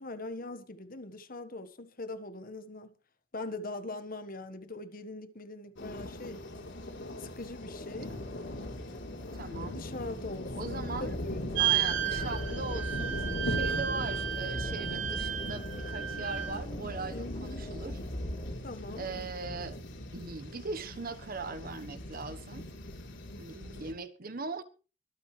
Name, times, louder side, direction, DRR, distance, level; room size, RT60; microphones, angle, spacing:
voice 1, 0.0-2.9 3.3-6.4 7.2-8.1 9.7-11.9 13.8-14.2 17.1-17.7 18.6-19.1, left 2 dB, 40° left, 1.3 m, -42 dB
sound 1, 5.8-23.9, left 1 dB, 60° left, 3.6 m, -39 dB
sound 2, 7.6-18.5, left 1 dB, 25° left, 1.3 m, -45 dB
voice 2, 9.3-9.8 10.6-11.1 11.6-18.0 19.0-19.8 20.1-22.7 23.4-24.6, right 3 dB, 45° right, 1.1 m, -40 dB
sound 3, 11.6-16.6, right 11 dB, 65° right, 3.3 m, -33 dB
24.0 x 9.2 x 3.2 m
head